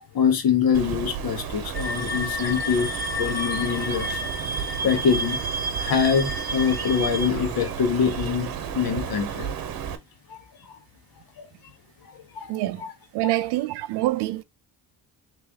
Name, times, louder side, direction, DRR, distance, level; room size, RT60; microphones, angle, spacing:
voice 1, 0.1-4.3 4.8-5.4 5.8-9.5 10.3-10.4 10.7-10.8 11.4-11.5 12.3-12.5 12.8-12.9 13.2-13.3, left 7 dB, 60° left, 1.2 m, -24 dB
Bird, 0.7-10.0, right 8 dB, 60° right, 0.8 m, -33 dB
sound 1, 1.7-7.3, equal, 20° right, 1.2 m, -31 dB
voice 2, 12.5-12.8 13.1-14.4, right 17 dB, 85° right, 0.5 m, -25 dB
3.3 x 3.2 x 3.4 m
cardioid pair, 95°, 39 cm